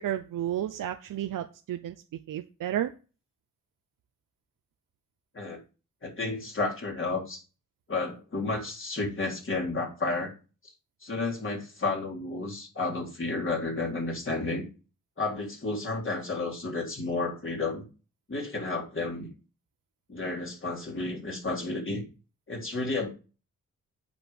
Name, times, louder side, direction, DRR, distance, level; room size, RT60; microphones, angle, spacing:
voice 1, 0.0-1.9 2.3-2.9, right 11 dB, 85° right, 8 dB, 0.7 m, -32 dB
voice 2, 6.0-7.4 7.9-10.3 11.0-14.7 15.2-17.8 18.3-19.3 20.1-22.1 22.5-23.1, left 3 dB, 40° left, 0 dB, 3.5 m, -31 dB
8.7 x 5.4 x 5.7 m, 0.33 s
cardioid pair, 85°, 32 cm